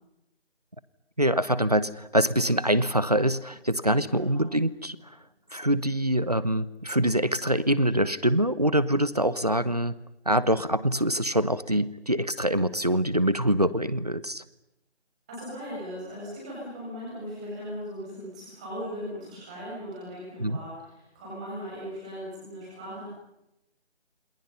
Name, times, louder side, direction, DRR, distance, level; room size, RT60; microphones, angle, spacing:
voice 1, 1.2-5.2 5.5-9.9 10.3-14.4 20.4-20.6, right 1 dB, 35° right, 17 dB, 1.0 m, -24 dB
voice 2, 4.0-4.4 15.3-23.1, equal, 5° right, -7 dB, 7.4 m, -38 dB
29.5 x 27.5 x 5.7 m, 0.87 s
figure-of-eight pair, 180°, 34 cm